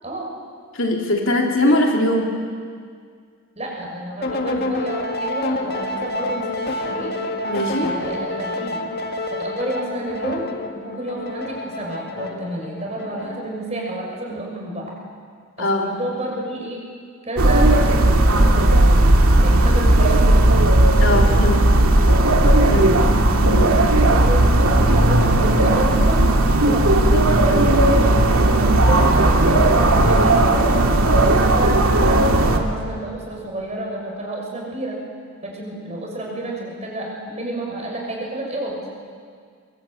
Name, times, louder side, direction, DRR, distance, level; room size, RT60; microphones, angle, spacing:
voice 1, 0.7-2.3 7.4-7.9 15.6-15.9 21.0-21.6 22.7-22.9 23.5-23.8 27.1-27.8, left 1 dB, 65° left, 0 dB, 3.4 m, -21 dB
voice 2, 3.6-7.1 7.8-8.8 9.3-14.9 15.6-16.8 17.2-18.9 19.4-20.2 22.7-23.1 23.8-26.3 26.6-27.0 28.6-30.5 31.1-35.0 35.4-38.8, right 1 dB, 30° right, -1 dB, 6.2 m, -30 dB
sound 1, 4.2-13.6, left 2 dB, 45° left, 1.8 m, -28 dB
sound 2, 17.4-32.6, right 1 dB, 85° right, 2.2 m, -15 dB
23.5 x 22.5 x 8.7 m, 2.1 s
head